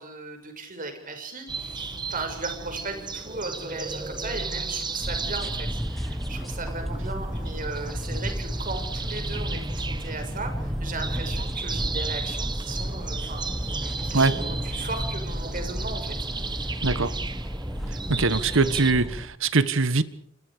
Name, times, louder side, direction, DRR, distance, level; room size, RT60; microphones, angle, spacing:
voice 1, 0.0-16.1 16.4-16.7, right 3 dB, 40° right, 5 dB, 6.5 m, -37 dB
sound 1, 1.5-18.9, right 3 dB, 20° right, 1.6 m, -35 dB
sound 2, 5.0-19.3, equal, ahead, 1.3 m, -32 dB
voice 2, 16.8-17.1 18.1-20.0, right 3 dB, 65° right, 14 dB, 1.5 m, -22 dB
28.5 x 27.0 x 5.1 m, 0.63 s
head